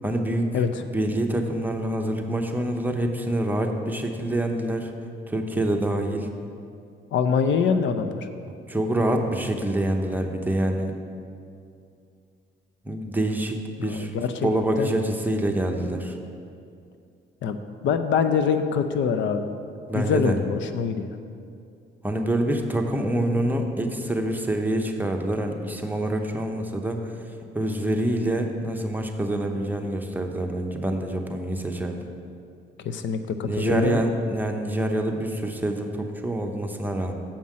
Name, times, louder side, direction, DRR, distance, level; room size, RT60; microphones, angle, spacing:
voice 1, 0.0-0.5 0.9-4.9 5.3-6.3 8.7-10.9 12.8-14.1 14.4-16.2 19.9-20.4 22.0-27.0 27.5-32.1 33.4-37.1, right 1 dB, 10° right, 3 dB, 0.9 m, -26 dB
voice 2, 7.1-8.3 13.8-14.5 14.8-14.9 17.4-17.6 17.8-19.5 19.9-21.1 32.8-34.0, left 6 dB, 70° left, 9 dB, 0.6 m, -24 dB
7.4 x 5.5 x 7.5 m, 2.5 s
cardioid pair, 90°, 20 cm